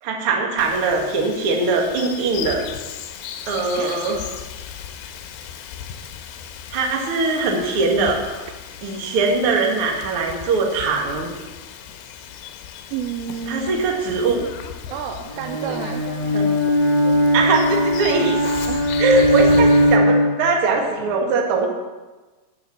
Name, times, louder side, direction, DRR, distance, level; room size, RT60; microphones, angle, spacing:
voice 1, 0.0-2.6 3.5-4.2 6.7-8.2 8.8-11.3 13.5-14.4 16.3-16.5 17.3-18.3 19.0-21.7, right 3 dB, 55° right, 0 dB, 1.6 m, -21 dB
Bird vocalization bird call bird song, 0.6-20.0, left 8 dB, 90° left, 3.1 m, -36 dB
voice 2, 12.9-13.8 14.9-16.0 18.7-19.0 19.2-19.3 19.6-19.7, right 7 dB, 85° right, 6 dB, 2.8 m, -31 dB
Bowed string instrument, 15.3-20.5, equal, 10° left, 3.6 m, -19 dB
9.7 x 6.5 x 7.2 m, 1.2 s
omnidirectional pair, 4.9 m